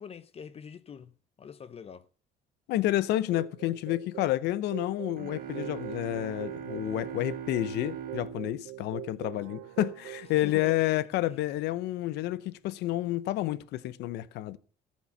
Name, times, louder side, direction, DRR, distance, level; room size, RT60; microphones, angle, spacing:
voice 1, 0.0-2.1 10.3-10.7, left 7 dB, 35° left, 0.7 m, -45 dB
voice 2, 2.7-14.6, left 15 dB, 80° left, 0.6 m, -30 dB
sound 1, 3.1-10.8, right 17 dB, 90° right, 0.6 m, -43 dB
sound 2, 5.2-9.8, right 9 dB, 60° right, 1.5 m, -41 dB
14.5 x 7.5 x 7.0 m
cardioid pair, 110°, 17 cm